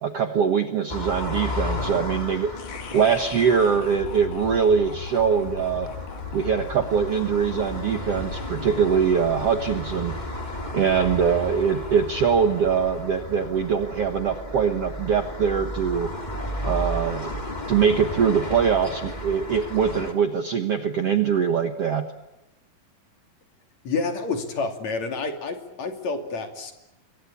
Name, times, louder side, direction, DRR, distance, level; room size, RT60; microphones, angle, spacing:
voice 1, 0.0-2.5 2.9-5.9 6.3-10.2 10.7-16.1 16.6-17.3 17.7-22.1, right 7 dB, 55° right, 7 dB, 1.8 m, -22 dB
sound 1, 0.9-20.1, left 1 dB, 15° left, 2.0 m, -34 dB
sound 2, 2.6-18.8, left 4 dB, 75° left, 4.0 m, -41 dB
voice 2, 23.8-26.7, left 4 dB, 50° left, 5 dB, 3.8 m, -29 dB
27.0 x 23.5 x 8.6 m, 0.96 s
omnidirectional pair, 4.3 m